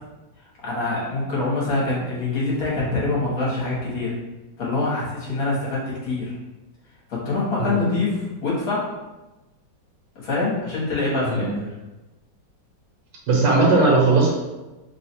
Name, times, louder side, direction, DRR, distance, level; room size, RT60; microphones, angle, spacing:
voice 1, 0.6-4.1 4.6-6.3 7.1-8.9 10.2-11.6, left 3 dB, 50° left, -6 dB, 1.7 m, -25 dB
voice 2, 13.3-14.3, right 3 dB, 70° right, -4 dB, 1.5 m, -18 dB
3.6 x 2.4 x 4.3 m, 1.1 s
omnidirectional pair, 2.0 m